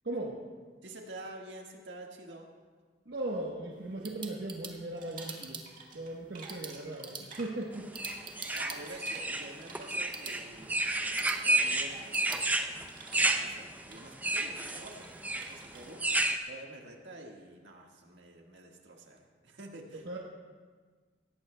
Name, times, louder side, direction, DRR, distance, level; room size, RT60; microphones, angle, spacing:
voice 1, 0.0-0.4 3.1-5.6 5.9-7.9 19.9-20.2, right 2 dB, 65° right, -2 dB, 1.1 m, -38 dB
voice 2, 0.8-2.5 8.5-12.4 13.1-20.1, right 1 dB, 85° right, 1 dB, 1.6 m, -48 dB
sound 1, 3.7-12.5, right 5 dB, 25° right, 1.0 m, -47 dB
sound 2, 5.0-6.1 6.3-15.9, right 3 dB, 45° right, 1.9 m, -51 dB
sound 3, 8.0-16.4, right 2 dB, 10° right, 0.5 m, -31 dB
18.0 x 14.5 x 2.2 m, 1.5 s
head